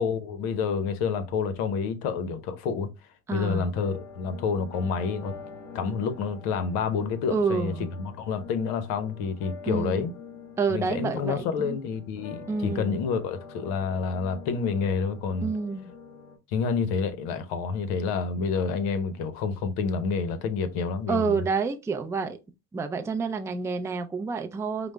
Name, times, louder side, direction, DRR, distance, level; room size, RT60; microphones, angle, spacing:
voice 1, 0.0-2.9 3.3-5.3 5.7-10.1 10.7-15.5 16.5-21.4, left 5 dB, 80° left, 0.8 m, -28 dB
voice 2, 3.3-3.8 7.3-7.9 9.7-10.1 10.6-11.8 12.5-13.0 15.4-15.9 21.1-22.4 22.7-24.9, right 4 dB, 10° right, 0.4 m, -28 dB
sound 1, 3.7-16.4, left 5 dB, 45° left, 1.7 m, -46 dB
5.0 x 2.0 x 3.2 m
supercardioid pair, 105°, 37 cm